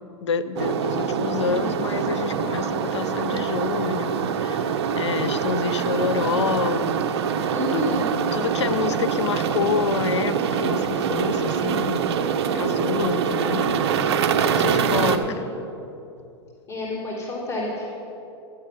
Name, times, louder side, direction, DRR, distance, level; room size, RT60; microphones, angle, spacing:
voice 1, 0.0-7.1 7.7-12.0 12.5-15.4, left 6 dB, 85° left, 12 dB, 0.6 m, -28 dB
sound 1, 0.6-15.2, right 7 dB, 65° right, 0.8 m, -24 dB
voice 2, 7.5-8.0 14.5-15.5 16.7-17.9, left 2 dB, 20° left, -6 dB, 3.2 m, -29 dB
13.0 x 7.8 x 5.8 m, 2.8 s
hypercardioid pair, 110°, 15 cm